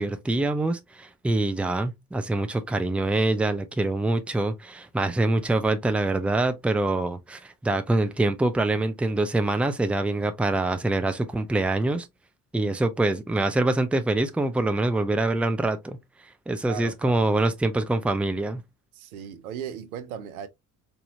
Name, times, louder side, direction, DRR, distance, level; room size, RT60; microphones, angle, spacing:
voice 1, 0.0-12.1 12.5-16.0 16.5-18.6, right 2 dB, 5° right, 0.5 m, -25 dB
voice 2, 16.6-17.3 18.9-20.5, right 9 dB, 75° right, 0.7 m, -37 dB
4.3 x 2.7 x 2.6 m
figure-of-eight pair, 50°, 43 cm